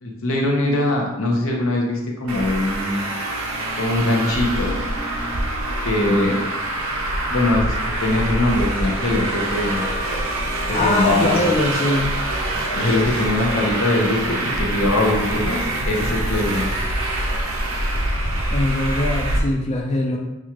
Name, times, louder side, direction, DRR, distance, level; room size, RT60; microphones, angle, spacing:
voice 1, 0.0-3.0 3.8-4.8 5.8-6.4 7.3-9.9 10.7-11.4 12.7-16.7, left 1 dB, 75° left, 0 dB, 0.9 m, -22 dB
Traffic noise roadway noise, 2.3-19.4, right 1 dB, 80° right, 0.7 m, -25 dB
voice 2, 10.7-12.2 18.5-20.2, left 2 dB, 30° left, -1 dB, 0.4 m, -22 dB
6.2 x 2.3 x 2.9 m, 0.97 s
head